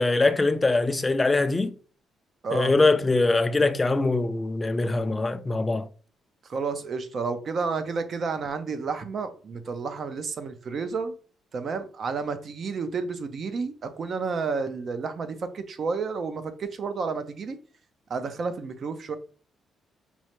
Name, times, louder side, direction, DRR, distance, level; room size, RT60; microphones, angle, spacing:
voice 1, 0.0-1.7 2.5-5.9, left 3 dB, 20° left, 0.4 m, -23 dB
voice 2, 6.5-11.1 11.5-17.6 18.1-19.2, right 4 dB, 50° right, 0.7 m, -31 dB
5.3 x 2.1 x 3.1 m
cardioid pair, 90°, 0 cm